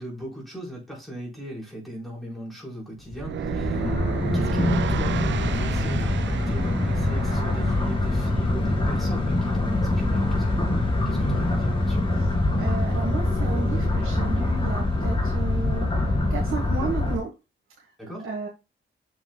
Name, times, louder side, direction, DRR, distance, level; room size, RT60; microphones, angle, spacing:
voice 1, 0.0-4.1 4.3-12.1 18.0-18.3, equal, ahead, 4.2 m, -38 dB
sound 1, 3.1-17.2, left 2 dB, 25° left, 2.3 m, -24 dB
sound 2, 3.2-8.3, right 10 dB, 60° right, 0.4 m, -33 dB
voice 2, 12.6-15.9 16.3-17.3 18.2-18.5, right 4 dB, 80° right, 1.4 m, -32 dB
7.8 x 6.3 x 2.3 m
wide cardioid pair, 125°, 21 cm